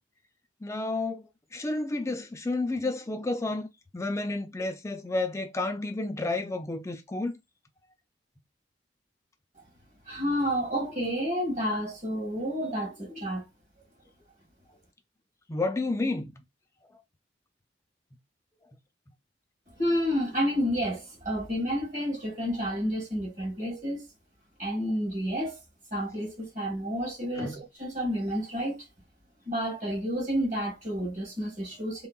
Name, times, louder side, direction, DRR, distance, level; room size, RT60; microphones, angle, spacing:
voice 1, 0.6-3.7 3.9-7.4 15.5-16.3 27.4-27.6, left 2 dB, 15° left, 0.4 m, -31 dB
voice 2, 10.1-13.5 19.8-24.1 24.6-25.6 25.9-28.8 29.5-32.1, equal, 50° right, 1.8 m, -30 dB
3.5 x 2.0 x 2.2 m
head